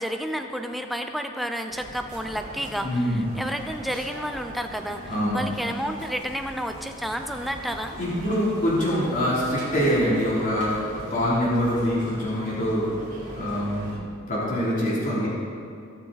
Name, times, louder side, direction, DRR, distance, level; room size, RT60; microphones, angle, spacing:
voice 1, 0.0-8.0, equal, ahead, 5 dB, 0.7 m, -31 dB
sound 1, 1.7-14.0, right 1 dB, 40° right, 3.1 m, -42 dB
voice 2, 2.8-3.3 5.1-5.4 8.0-12.9 13.3-13.9 14.3-15.3, equal, 40° left, -8 dB, 3.3 m, -24 dB
21.0 x 7.3 x 4.2 m, 2.5 s
head